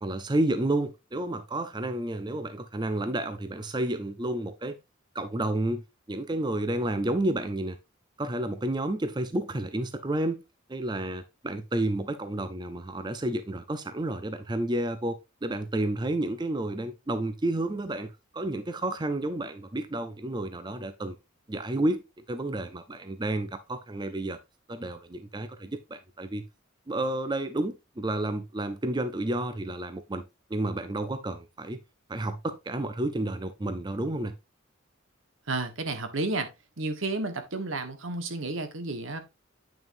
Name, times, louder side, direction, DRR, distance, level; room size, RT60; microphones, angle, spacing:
voice 1, 0.0-4.8 5.1-5.8 6.1-7.8 8.2-10.4 10.7-21.2 21.5-24.4 24.7-26.4 26.9-30.2 30.5-31.8 32.1-34.3, right 1 dB, 20° right, 0.5 m, -31 dB
voice 2, 35.5-36.5 36.8-39.2, right 2 dB, 75° right, 1.3 m, -31 dB
9.0 x 6.2 x 2.6 m
head